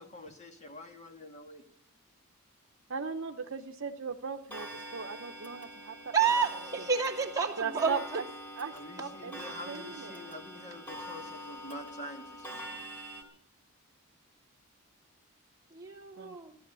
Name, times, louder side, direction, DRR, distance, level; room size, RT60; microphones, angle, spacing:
voice 1, 0.0-1.6 8.7-12.8, left 1 dB, 35° left, 5 dB, 2.1 m, -47 dB
voice 2, 2.9-6.1 6.5-6.6 7.6-8.2 8.6-9.4 9.7-10.2 16.2-16.4, right 5 dB, 65° right, 5 dB, 0.8 m, -38 dB
Clock, 4.5-13.2, equal, 10° left, 3.3 m, -44 dB
voice 3, 6.1-7.9 15.7-16.5, right 6 dB, 15° right, -2 dB, 2.4 m, -29 dB
15.0 x 12.0 x 6.9 m, 0.63 s
head